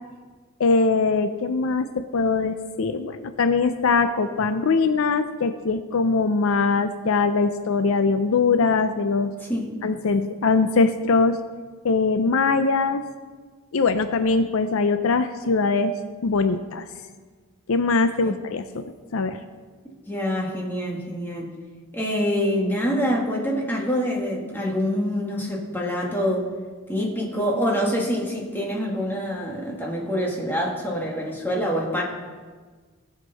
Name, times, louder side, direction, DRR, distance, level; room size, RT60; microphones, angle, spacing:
voice 1, 0.6-9.3 9.8-11.4 11.8-13.0 13.7-15.9 16.2-16.9 17.7-18.8 19.1-19.4, left 4 dB, 65° left, 10 dB, 0.5 m, -22 dB
voice 2, 20.1-21.5 21.9-26.5 26.9-32.0, equal, 10° left, -2 dB, 1.8 m, -25 dB
18.5 x 6.6 x 4.1 m, 1.5 s
head